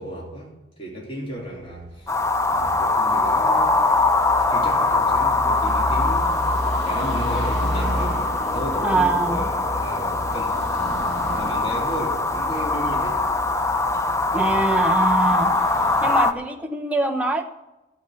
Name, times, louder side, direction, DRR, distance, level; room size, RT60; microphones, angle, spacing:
voice 1, 0.0-2.1 2.4-4.1 4.5-8.2 8.5-10.8 11.2-13.2, equal, 30° left, 3.4 m, -34 dB
Car passing by / Traffic noise roadway noise, 1.4-16.1, left 1 dB, 75° left, 4.3 m, -32 dB
sound 1, 2.1-16.3, left 3 dB, 15° left, 0.6 m, -22 dB
voice 2, 8.8-9.5 14.3-15.5 16.0-17.4, right 3 dB, 10° right, 0.9 m, -23 dB
11.5 x 7.7 x 9.2 m
head